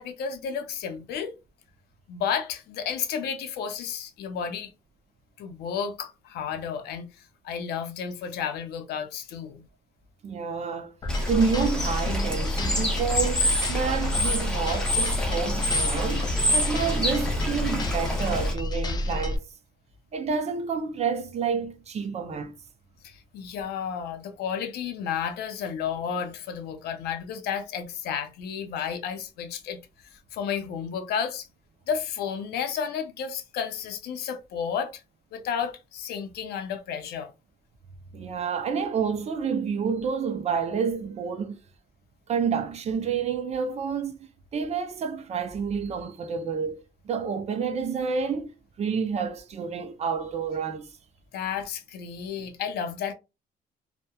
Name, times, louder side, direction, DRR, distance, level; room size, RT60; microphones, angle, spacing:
voice 1, 0.0-1.3 2.1-4.7 5.4-7.1 7.4-9.6 23.0-29.8 30.1-31.5 31.9-35.0 35.3-37.3 51.3-53.1, left 7 dB, 70° left, 0.6 m, -32 dB
voice 2, 10.2-10.9 11.3-19.4 20.1-22.5 38.1-41.6 42.3-48.5 48.8-50.9, right 6 dB, 40° right, 0.5 m, -29 dB
sound 1, 11.0-19.4, left 1 dB, 25° left, 0.3 m, -29 dB
Bird / Water, 11.1-18.5, left 1 dB, 5° left, 0.7 m, -28 dB
2.8 x 2.1 x 2.3 m
cardioid pair, 110°, 17 cm